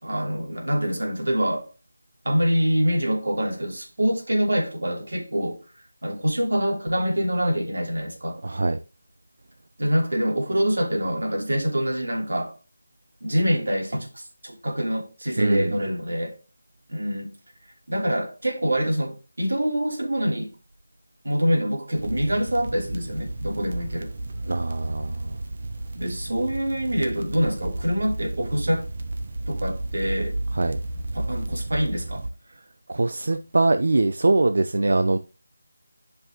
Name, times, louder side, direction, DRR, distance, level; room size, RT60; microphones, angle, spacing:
voice 1, 0.0-1.7 2.2-5.6 6.0-8.4 9.8-12.5 13.2-16.3 16.9-17.3 17.9-20.5 21.2-24.1 25.9-28.8 29.5-30.4 31.1-32.2, equal, 85° right, 2.9 m, -25 dB
voice 2, 8.4-8.8 15.4-15.8 24.4-25.4 30.5-30.8 32.9-35.2, right 2 dB, 60° right, 0.5 m, -22 dB
sound 1, 21.9-32.3, right 2 dB, 35° right, 0.8 m, -32 dB
9.5 x 5.4 x 2.9 m
figure-of-eight pair, 175°, 0 cm